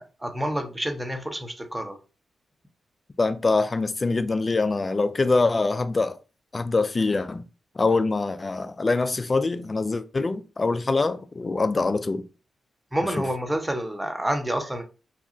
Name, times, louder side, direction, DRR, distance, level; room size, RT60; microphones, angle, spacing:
voice 1, 0.0-2.0 12.9-14.8, right 1 dB, 15° right, 0.7 m, -28 dB
voice 2, 3.2-6.2 6.5-7.4 7.8-12.2, left 3 dB, 40° left, 0.3 m, -24 dB
2.8 x 2.2 x 2.4 m
supercardioid pair, 40°, 0 cm